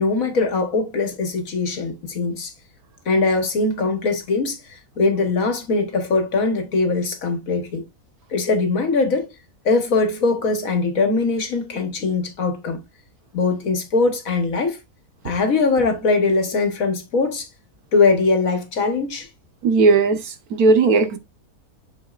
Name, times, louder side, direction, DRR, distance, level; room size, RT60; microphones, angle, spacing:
voice 1, 0.0-2.5 3.0-7.9 8.3-9.3 9.6-12.8 13.3-14.8 15.2-17.5 17.9-19.3, left 3 dB, 65° left, 1.6 m, -21 dB
voice 2, 19.6-21.2, right 3 dB, 80° right, 1.6 m, -17 dB
7.9 x 6.2 x 2.4 m
omnidirectional pair, 1.5 m